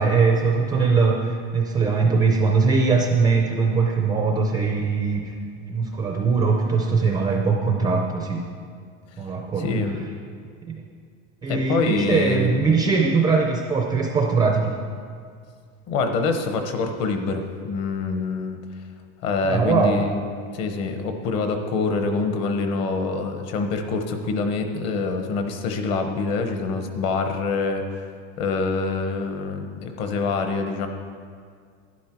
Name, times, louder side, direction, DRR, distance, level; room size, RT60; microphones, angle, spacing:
voice 1, 0.0-8.4 9.2-9.7 10.6-10.8 11.4-14.8 19.4-20.0, right 4 dB, 10° right, 1 dB, 0.4 m, -21 dB
voice 2, 9.6-10.0 11.5-12.5 15.9-18.6 19.2-20.2 20.5-28.0 28.4-30.9, left 4 dB, 45° left, 6 dB, 1.1 m, -25 dB
11.5 x 10.5 x 4.5 m, 2.1 s
cardioid pair, 175°, 36 cm